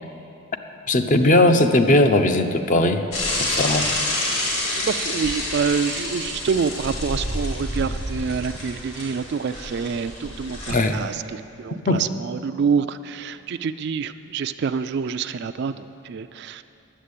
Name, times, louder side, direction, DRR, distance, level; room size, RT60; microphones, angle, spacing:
voice 1, 0.9-3.0 3.4-3.9 10.7-11.0 11.9-12.0, left 1 dB, 35° left, 7 dB, 0.6 m, -18 dB
Bicycle / Mechanisms, 3.1-10.7, left 1 dB, 65° left, 3.0 m, -28 dB
voice 2, 4.8-16.6, right 6 dB, 50° right, 11 dB, 0.3 m, -27 dB
10.0 x 7.4 x 8.4 m, 2.7 s
head